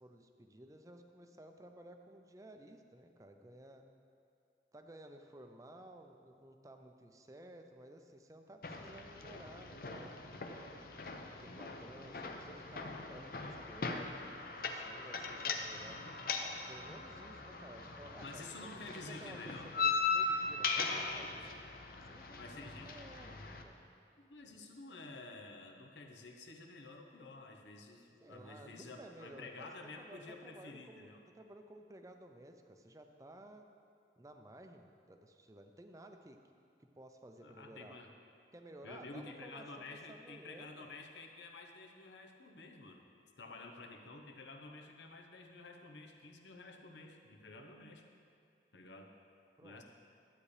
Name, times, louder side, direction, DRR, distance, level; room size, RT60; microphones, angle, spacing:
voice 1, 0.0-3.8 4.7-10.4 11.4-16.0 16.7-18.4 18.7-21.5 22.0-23.9 24.5-24.7 28.2-29.7 30.0-33.7 34.2-36.4 37.0-38.0 38.5-40.9 49.6-49.8, right 1 dB, 20° right, 5 dB, 0.5 m, -55 dB
sound 1, 8.6-23.6, left 4 dB, 55° left, 0.6 m, -39 dB
voice 2, 18.2-19.7 21.2-21.5 22.4-23.0 24.2-31.2 37.4-38.1 38.8-43.0 43.4-48.1 48.7-49.1 49.6-49.8, left 3 dB, 85° left, 3 dB, 0.9 m, -51 dB
12.0 x 8.4 x 3.3 m, 2.4 s
head